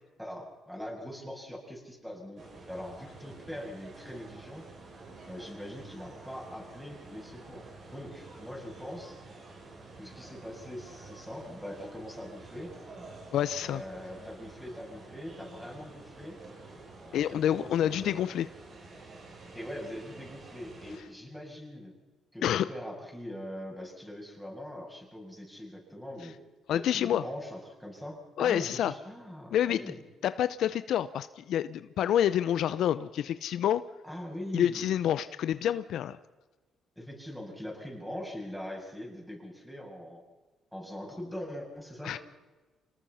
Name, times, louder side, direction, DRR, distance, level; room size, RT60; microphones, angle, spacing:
voice 1, 0.2-4.7 5.3-7.7 7.9-9.2 10.0-12.8 13.6-16.4 17.0-18.3 19.5-21.9 22.3-26.4 26.7-30.0 34.0-35.0 37.0-40.2 40.7-42.2, left 1 dB, ahead, -1 dB, 7.7 m, -42 dB
sound 1, 2.4-21.0, right 3 dB, 55° right, 7.3 m, -49 dB
voice 2, 13.3-13.8 17.1-18.5 22.4-22.7 26.7-27.2 28.4-28.9 29.5-29.8 30.2-33.9 34.5-36.2 42.0-42.2, left 10 dB, 75° left, 14 dB, 0.7 m, -28 dB
26.0 x 19.0 x 5.8 m, 1.2 s
cardioid pair, 90°, 0 cm